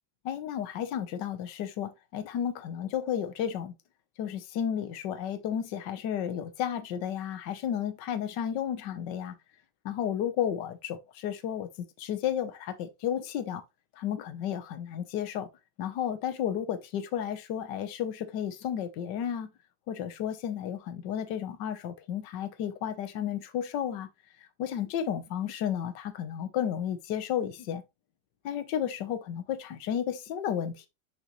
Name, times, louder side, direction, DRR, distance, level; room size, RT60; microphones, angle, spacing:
voice 1, 0.2-3.7 4.2-9.4 9.8-11.7 12.0-13.6 14.0-15.5 15.8-19.5 19.9-24.1 24.6-27.8 28.4-30.9, left 9 dB, 75° left, 1.5 m, -32 dB
6.4 x 5.4 x 3.0 m
omnidirectional pair, 2.0 m